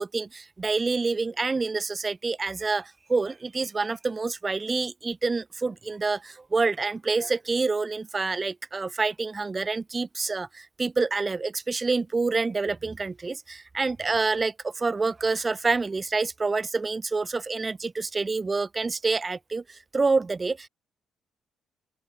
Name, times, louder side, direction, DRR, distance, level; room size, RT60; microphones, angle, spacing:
voice 1, 0.0-2.8 3.1-10.5 10.8-19.6 19.9-20.7, right 3 dB, 30° right, 0.6 m, -27 dB
open air
hypercardioid pair, 45°, 0 cm